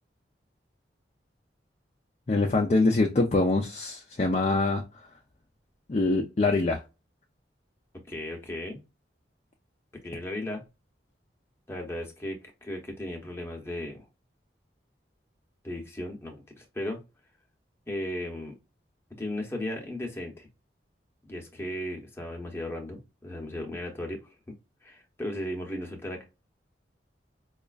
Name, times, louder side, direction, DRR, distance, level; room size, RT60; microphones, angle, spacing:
voice 1, 2.3-4.8 5.9-6.8, left 3 dB, 35° left, 2 dB, 0.5 m, -24 dB
voice 2, 8.1-8.8 9.9-10.6 11.7-14.0 15.6-17.0 17.9-18.6 19.2-20.5 21.2-24.3 24.8-26.2, left 1 dB, 15° left, 1 dB, 0.8 m, -36 dB
4.9 x 2.4 x 2.4 m, 0.27 s
head